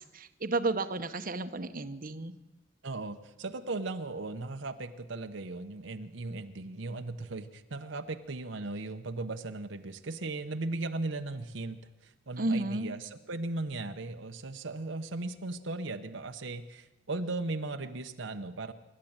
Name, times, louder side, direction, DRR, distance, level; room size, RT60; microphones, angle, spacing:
voice 1, 0.0-2.3 12.4-13.0, right 2 dB, 45° right, 9 dB, 1.1 m, -32 dB
voice 2, 2.8-18.7, right 2 dB, 70° right, 6 dB, 1.0 m, -37 dB
25.5 x 12.5 x 8.9 m, 1.0 s
head